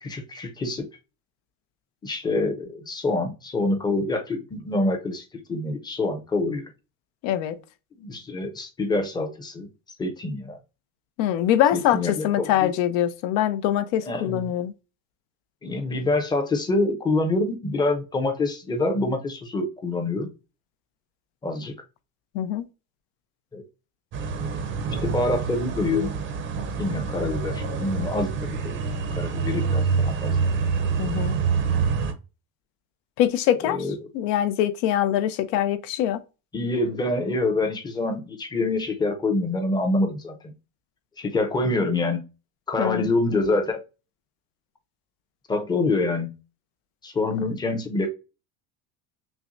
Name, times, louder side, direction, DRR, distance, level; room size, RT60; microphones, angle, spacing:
voice 1, 0.0-0.9 2.0-6.6 7.9-9.7 10.0-10.6 11.7-12.7 14.0-14.5 15.6-20.3 21.4-21.7 23.5-23.6 24.9-26.1 26.8-28.3 28.6-28.8 29.1-30.5 33.6-33.9 36.5-40.4 41.2-42.2 42.7-43.8 45.5-46.3 47.0-48.1, left 2 dB, 10° left, 0.7 m, -26 dB
voice 2, 7.2-7.6 11.2-14.7 22.3-22.6 31.0-31.4 33.2-33.8 34.1-36.2 42.8-43.1, left 11 dB, 70° left, 0.8 m, -23 dB
sound 1, 24.1-32.1, right 5 dB, 30° right, 0.6 m, -26 dB
6.0 x 2.2 x 2.6 m
cardioid pair, 160°, 39 cm